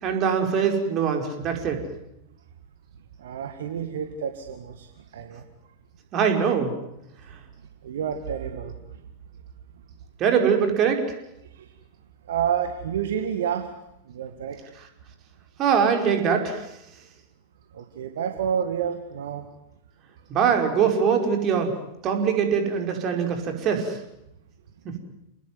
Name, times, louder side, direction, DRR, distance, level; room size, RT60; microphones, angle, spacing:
voice 1, 0.0-1.8 6.1-6.7 10.2-11.0 15.6-16.7 20.3-21.8 22.0-24.0 24.9-25.0, right 7 dB, 35° right, 5 dB, 5.3 m, -22 dB
voice 2, 3.2-5.5 7.8-9.1 11.4-11.8 12.3-13.7 14.0-14.7 17.7-19.5, right 8 dB, 60° right, 7 dB, 2.0 m, -30 dB
29.5 x 20.0 x 9.7 m, 0.83 s
figure-of-eight pair, 90°, 0 cm